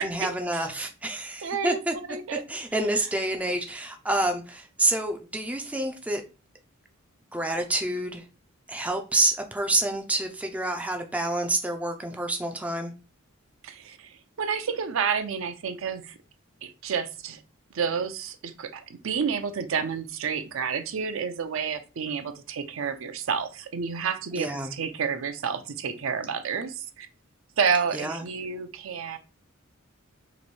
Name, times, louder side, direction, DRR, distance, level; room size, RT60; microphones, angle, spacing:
voice 1, 0.0-1.9 2.5-6.2 7.3-8.2 8.7-12.9 24.4-24.7 27.9-28.2, right 2 dB, 5° right, 0.4 m, -28 dB
voice 2, 1.4-1.8 2.1-2.4 13.6-16.1 16.6-17.4 17.7-27.1 27.6-29.2, right 6 dB, 65° right, 0.5 m, -30 dB
3.0 x 2.6 x 4.1 m
head